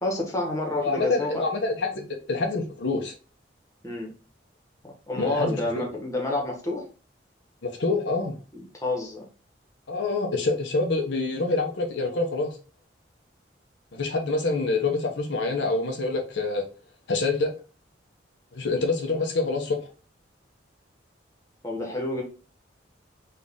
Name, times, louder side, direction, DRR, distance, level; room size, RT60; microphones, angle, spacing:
voice 1, 0.0-1.4 1.9-2.1 3.8-4.1 5.1-6.8 8.5-9.2 21.6-22.2, left 2 dB, 15° left, -1 dB, 1.0 m, -29 dB
voice 2, 0.8-2.0 2.3-3.1 5.2-5.8 7.6-8.3 9.9-12.6 13.9-16.6 17.1-17.5 18.5-19.8, left 3 dB, 65° left, 3 dB, 0.6 m, -26 dB
4.0 x 2.4 x 3.5 m, 0.36 s
head